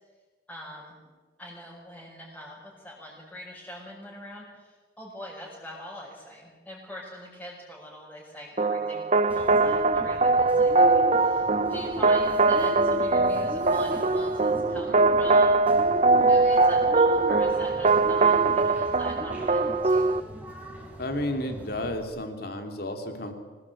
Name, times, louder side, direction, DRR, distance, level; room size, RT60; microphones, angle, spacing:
voice 1, 0.5-1.0 1.4-15.9 16.2-20.1, equal, 5° left, -7 dB, 5.7 m, -43 dB
sound 1, 8.6-20.2, right 3 dB, 40° right, 0.7 m, -22 dB
Bird, 9.3-22.0, equal, 10° right, 4.7 m, -38 dB
voice 2, 21.0-23.3, left 1 dB, 60° left, 5 dB, 3.2 m, -32 dB
25.5 x 19.0 x 8.6 m, 1.4 s
head